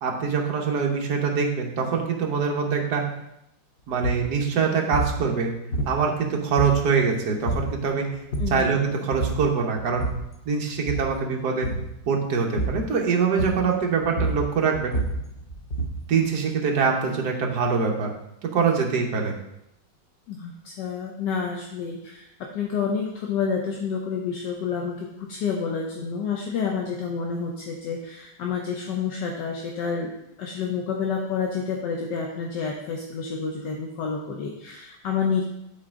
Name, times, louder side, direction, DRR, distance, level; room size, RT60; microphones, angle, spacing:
voice 1, 0.0-3.0 3.9-5.5 5.9-8.1 8.5-10.1 10.5-11.7 12.1-14.9 16.1-18.1 18.4-19.3, right 5 dB, 60° right, 1 dB, 1.6 m, -24 dB
sound 1, 4.0-4.3 4.9-5.2 5.7-6.2 6.6-7.0 7.5-7.8 8.1-8.7 9.1-9.5 9.8-10.3 10.8-11.2 11.6-11.9 12.6-12.9 13.4-13.8 14.0-16.1, right 2 dB, 55° left, 0.6 m, -28 dB
voice 2, 20.3-30.1 30.4-35.4, left 6 dB, 70° left, 1 dB, 1.4 m, -29 dB
11.0 x 4.3 x 3.7 m, 0.83 s
omnidirectional pair, 2.1 m